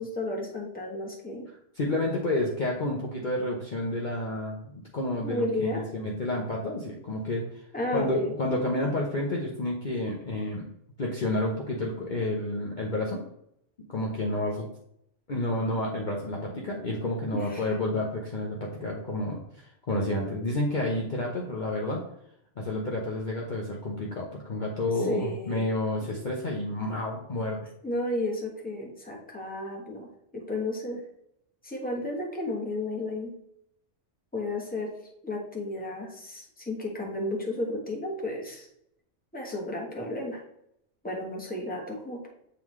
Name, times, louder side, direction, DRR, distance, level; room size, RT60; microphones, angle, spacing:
voice 1, 0.0-1.5 5.2-5.8 7.7-8.3 17.3-17.7 25.0-25.7 26.0-26.2 27.8-31.0 31.6-33.3 34.3-34.9 35.2-38.7 39.3-40.4 41.0-42.3, left 1 dB, 10° left, -1 dB, 1.1 m, -33 dB
voice 2, 1.7-7.6 7.9-10.6 11.0-13.2 13.9-14.7 15.3-22.0 22.6-27.7, left 1 dB, 45° left, -2 dB, 0.9 m, -30 dB
8.1 x 3.7 x 3.1 m, 0.75 s
omnidirectional pair, 1.3 m